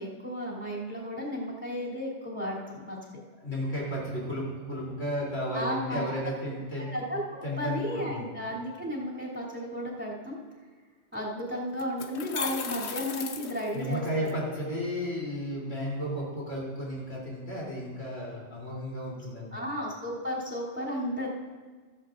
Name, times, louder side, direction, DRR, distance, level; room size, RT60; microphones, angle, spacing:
voice 1, 0.0-3.2 5.5-6.1 6.8-7.2 7.6-10.4 11.1-14.0 19.5-21.3, equal, 10° right, -6 dB, 3.0 m, -33 dB
voice 2, 3.4-6.9 7.4-8.3 13.7-19.6, equal, 90° left, -5 dB, 3.9 m, -33 dB
sound 1, 11.1-11.2 11.8-14.3, left 6 dB, 65° left, 1.0 m, -37 dB
15.5 x 14.0 x 2.6 m, 1.5 s
omnidirectional pair, 1.2 m